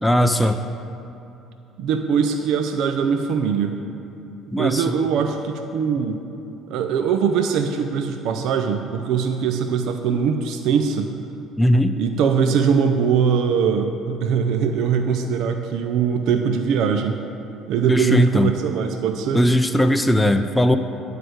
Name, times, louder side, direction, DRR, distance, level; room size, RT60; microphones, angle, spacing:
voice 1, 0.0-0.6 4.5-4.9 11.6-12.0 17.9-18.5 19.3-20.8, left 1 dB, 5° left, 7 dB, 0.4 m, -18 dB
voice 2, 1.8-3.8 4.6-6.2 6.7-11.1 12.0-17.2 17.7-19.5, right 6 dB, 70° right, 6 dB, 0.5 m, -21 dB
9.8 x 4.8 x 7.8 m, 2.8 s
supercardioid pair, 85°, 0 cm